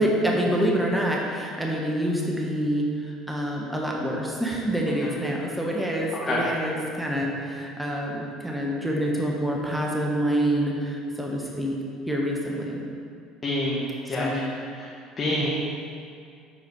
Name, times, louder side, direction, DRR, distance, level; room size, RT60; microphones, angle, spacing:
voice 1, 0.0-11.8 12.1-12.8 14.1-14.4 15.3-15.5, right 1 dB, 5° right, -2 dB, 1.3 m, -26 dB
voice 2, 13.4-14.3 14.8-15.5, left 1 dB, 35° left, -5 dB, 1.3 m, -27 dB
7.3 x 4.6 x 4.8 m, 2.3 s
hypercardioid pair, 65°, 0 cm